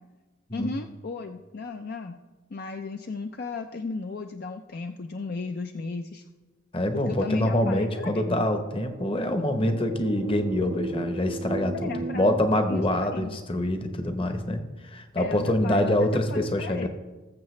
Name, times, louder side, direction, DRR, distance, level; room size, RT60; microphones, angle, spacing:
voice 1, 0.5-2.2 2.5-6.2 6.9-8.4 11.7-12.4 12.7-13.4 15.2-16.9, left 4 dB, 50° left, 6 dB, 0.4 m, -35 dB
voice 2, 6.7-16.9, left 1 dB, 25° left, 7 dB, 0.9 m, -25 dB
sound 1, 7.5-12.4, right 3 dB, 35° right, 0.4 m, -37 dB
20.0 x 7.3 x 3.2 m, 1.2 s
head